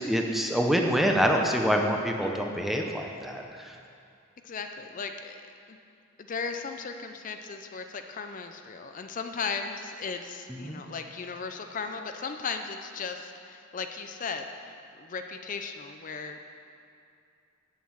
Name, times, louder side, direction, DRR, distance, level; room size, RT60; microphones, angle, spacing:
voice 1, 0.0-3.8 10.5-10.9, equal, ahead, 1 dB, 0.7 m, -26 dB
voice 2, 4.4-5.4 5.7-5.8 6.2-16.4, left 5 dB, 40° left, 6 dB, 0.5 m, -36 dB
8.4 x 7.3 x 7.2 m, 2.4 s
head